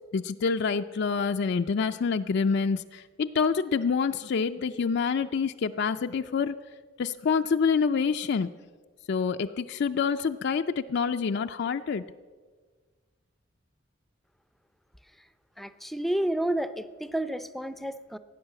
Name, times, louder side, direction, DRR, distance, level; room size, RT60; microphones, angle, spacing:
voice 1, 0.1-6.6 7.0-8.5 9.1-12.0, left 5 dB, 60° left, 7 dB, 0.4 m, -27 dB
voice 2, 15.6-18.2, right 1 dB, ahead, 12 dB, 0.5 m, -30 dB
16.5 x 9.6 x 7.5 m, 1.5 s
head